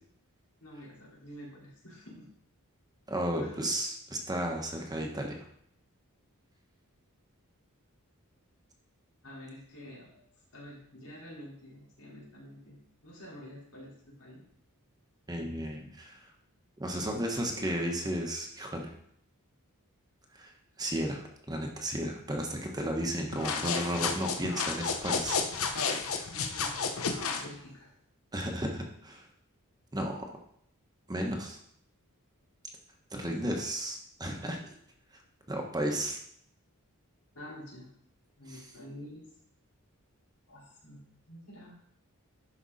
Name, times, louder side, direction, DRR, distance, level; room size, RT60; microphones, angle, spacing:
voice 1, 0.6-2.3 3.4-3.6 9.2-10.2 10.5-14.4 26.3-26.8 27.3-27.9 33.2-33.6 37.3-37.9 38.4-39.2 40.5-41.0 41.3-41.8, equal, 85° left, -6 dB, 4.3 m, -48 dB
voice 2, 3.1-5.5 15.3-16.2 16.8-18.9 20.3-20.5 20.8-25.7 28.3-29.2 29.9-30.3 31.1-31.6 33.1-34.6 35.5-36.2 38.5-38.6, right 1 dB, 20° right, 1 dB, 1.2 m, -33 dB
sound 1, 23.3-27.5, left 5 dB, 70° left, 1.0 m, -32 dB
11.5 x 5.3 x 4.2 m, 0.67 s
head